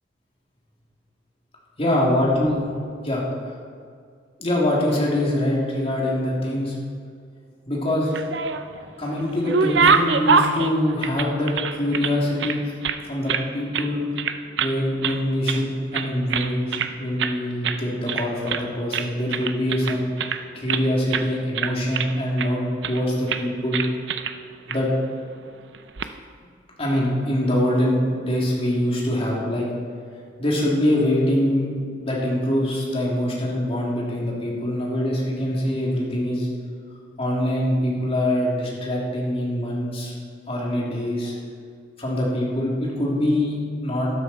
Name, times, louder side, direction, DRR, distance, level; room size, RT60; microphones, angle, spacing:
voice 1, 1.8-2.6 3.0-3.2 4.4-6.7 7.7-8.2 9.0-12.7 13.0-14.0 14.6-20.1 20.5-23.8 24.7-24.9 26.8-29.7 30.4-31.7 32.0-36.5 37.2-40.1 40.5-41.4 42.0-44.1, left 1 dB, 35° left, -4 dB, 3.3 m, -24 dB
sound 1, 8.0-8.8 9.2-12.1 12.4-13.5 13.7-13.9 14.2-14.8 15.0-15.6 15.9-16.9 17.2-17.4 17.6-17.8 18.1-18.7 18.9-20.8 21.1-21.3 21.5-22.5 22.8-23.0 23.3-23.4 23.7-24.3 24.7-24.8 25.7-26.1, right 5 dB, 70° right, 0.6 m, -24 dB
13.0 x 12.5 x 4.5 m, 2.2 s
head